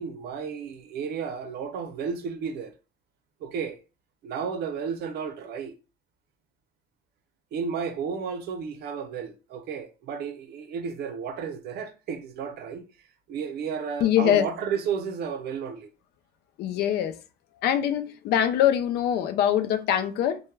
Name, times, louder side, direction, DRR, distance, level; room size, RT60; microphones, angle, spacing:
voice 1, 0.0-2.7 3.4-3.8 4.2-5.7 7.5-12.8 13.3-15.9, right 6 dB, 70° right, 0.5 m, -32 dB
voice 2, 14.0-14.5 16.6-17.2 17.6-20.4, left 10 dB, 75° left, 0.4 m, -23 dB
2.2 x 2.1 x 3.1 m
cardioid pair, 110°, 17 cm